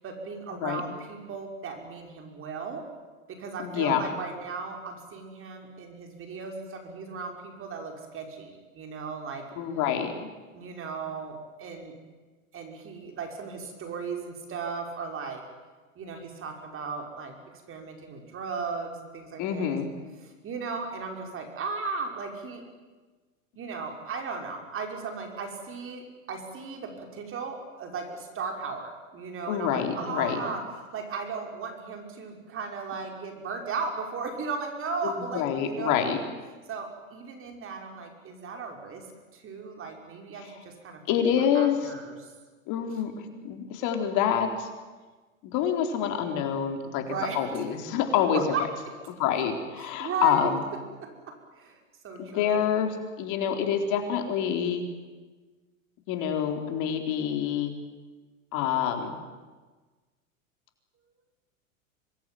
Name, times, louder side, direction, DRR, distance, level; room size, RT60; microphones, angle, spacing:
voice 1, 0.0-2.9 3.3-9.4 10.5-11.9 12.5-15.4 16.0-17.3 17.7-19.8 20.2-22.6 23.6-30.6 30.9-36.3 36.7-41.2 41.5-42.3 47.0-47.4 48.3-48.7 49.8-50.5 51.0-52.6 53.9-54.2, right 5 dB, 30° right, 3 dB, 5.7 m, -36 dB
voice 2, 3.6-4.1 9.6-10.1 19.4-19.9 29.5-30.4 35.0-36.2 41.1-41.8 42.7-44.7 45.4-47.0 47.3-48.4 49.2-50.6 52.2-54.8 56.1-57.7 58.5-59.1, left 8 dB, 45° left, 5 dB, 4.0 m, -27 dB
25.5 x 20.5 x 9.4 m, 1.3 s
hypercardioid pair, 105°, 41 cm